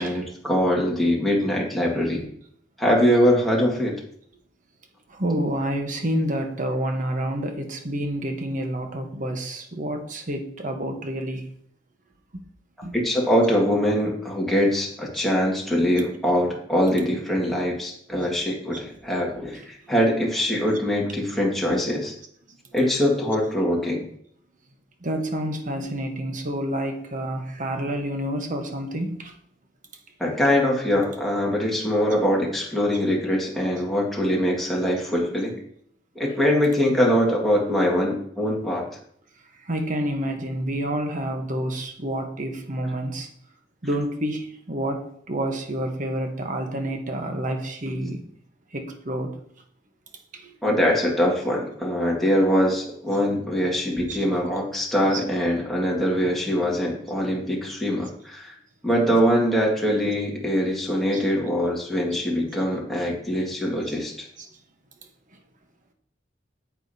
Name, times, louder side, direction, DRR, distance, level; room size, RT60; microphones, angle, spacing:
voice 1, 0.0-2.2 2.8-3.9 12.9-22.1 22.7-24.0 30.2-35.5 36.2-38.9 50.6-58.5 58.8-64.3, equal, ahead, -3 dB, 1.8 m, -23 dB
voice 2, 5.1-11.4 12.8-12.9 15.2-15.3 19.5-19.6 22.8-23.0 25.0-29.3 30.3-30.4 39.7-43.3 43.8-48.2 48.7-49.3 54.0-54.4 55.1-55.2 59.1-59.2 60.0-60.1 61.1-61.2 63.9-64.0 64.4-64.5, right 1 dB, 45° right, 5 dB, 1.1 m, -29 dB
8.9 x 8.1 x 2.8 m, 0.66 s
head